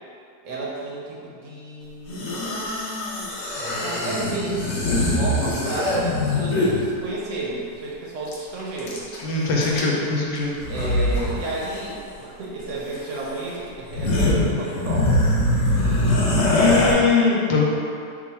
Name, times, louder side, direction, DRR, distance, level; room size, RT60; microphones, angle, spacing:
voice 1, 0.4-2.4 3.8-9.0 9.6-9.8 10.7-15.2, right 2 dB, 65° right, -5 dB, 0.8 m, -32 dB
sound 1, 2.1-6.8 8.3-8.4 8.6-9.2 9.6-10.1 10.6-11.3 11.6-11.8 12.9-13.0 13.5-13.6 13.8-16.9, left 1 dB, 65° left, 0.7 m, -22 dB
voice 2, 9.2-10.6 16.5-17.6, left 4 dB, 85° left, -3 dB, 1.2 m, -21 dB
3.0 x 2.3 x 4.1 m, 2.4 s
omnidirectional pair, 1.7 m